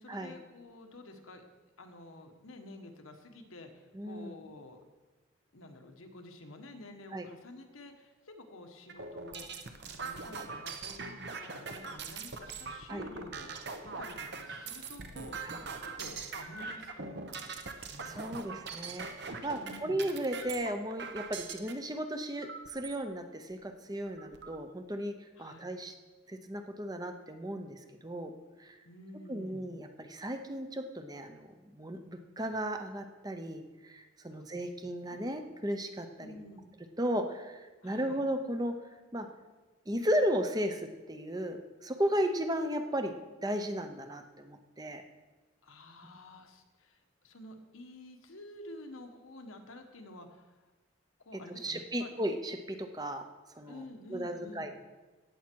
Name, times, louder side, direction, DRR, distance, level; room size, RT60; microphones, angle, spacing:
voice 1, 0.0-1.4 1.8-4.8 5.5-15.6 16.0-17.5 17.8-19.0 19.5-20.0 25.4-25.7 28.8-29.7 34.3-35.4 36.2-36.7 37.8-38.2 45.6-50.6 51.2-52.1 53.7-54.7, left 1 dB, 90° left, 4 dB, 1.4 m, -50 dB
voice 2, 3.9-4.3 7.1-7.3 12.9-13.0 15.4-15.6 18.1-25.1 25.4-25.9 26.3-28.3 28.6-28.8 29.3-36.3 37.0-38.7 39.1-39.3 39.9-43.1 43.4-45.0 51.6-53.2 53.6-53.8 54.1-54.7, equal, 20° right, 6 dB, 0.7 m, -35 dB
sound 1, 8.9-21.7 22.4-23.0 23.5-23.6 23.9-24.6, right 4 dB, 55° right, 0.9 m, -42 dB
17.0 x 7.2 x 4.6 m, 1.2 s
head